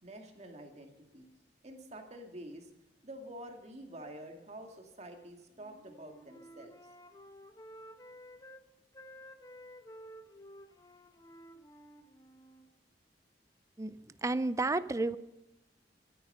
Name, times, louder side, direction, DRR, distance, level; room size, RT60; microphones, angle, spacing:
voice 1, 0.0-1.2 1.6-2.7 3.0-6.7, right 1 dB, 40° right, 3 dB, 2.2 m, -48 dB
Wind instrument woodwind instrument, 5.5-8.6 8.9-12.7, equal, 20° left, 1.0 m, -53 dB
voice 2, 14.2-15.2, right 2 dB, 20° right, 14 dB, 0.4 m, -31 dB
23.0 x 9.4 x 5.6 m, 0.92 s
head